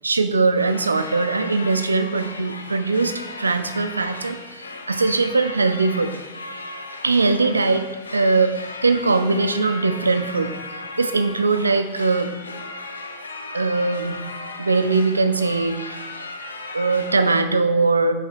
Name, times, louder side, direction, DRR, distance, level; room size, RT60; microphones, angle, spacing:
voice 1, 0.0-6.1 7.0-10.5 11.0-12.5 13.5-14.2 14.6-16.0 16.7-18.1, right 3 dB, 80° right, 9 dB, 0.4 m, -21 dB
sound 1, 0.6-17.4, left 3 dB, 75° left, 0.5 m, -36 dB
5.5 x 3.4 x 5.1 m, 1.2 s
figure-of-eight pair, 90°, 0 cm